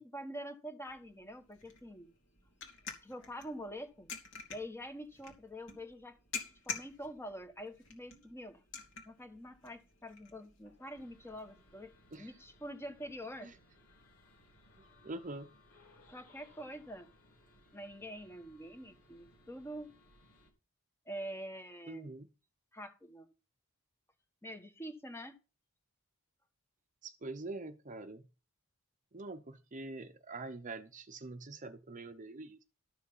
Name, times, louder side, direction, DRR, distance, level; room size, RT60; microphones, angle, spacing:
voice 1, 0.0-2.1 3.0-4.1 4.5-6.2 6.6-8.6 9.0-13.5 16.1-17.1 17.7-19.9 21.1-22.1 22.7-23.3 24.4-25.4, equal, 10° left, 1.3 m, -46 dB
sound 1, 0.9-12.2, left 5 dB, 60° left, 2.7 m, -49 dB
sound 2, 10.9-20.5, left 1 dB, 80° left, 3.4 m, -64 dB
voice 2, 14.8-15.5 21.9-22.3 27.0-28.2 29.1-32.6, right 2 dB, 35° right, 0.8 m, -45 dB
13.0 x 6.4 x 5.5 m
head